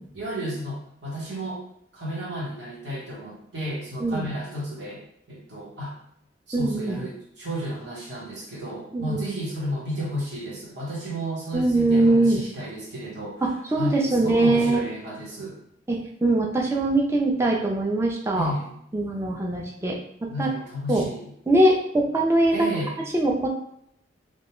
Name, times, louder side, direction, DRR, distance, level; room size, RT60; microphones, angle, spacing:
voice 1, 0.1-1.6 1.9-5.0 5.3-6.0 6.5-13.4 13.8-15.6 18.3-18.7 20.3-21.3 22.5-23.0, equal, 60° right, -6 dB, 0.9 m, -32 dB
voice 2, 6.5-7.0 8.9-9.2 11.5-12.4 13.4-14.8 15.9-18.5 18.9-20.0 20.4-20.5 20.9-21.0 21.5-22.7 23.1-23.5, right 2 dB, 15° right, -1 dB, 0.3 m, -22 dB
2.2 x 2.1 x 3.0 m, 0.72 s
head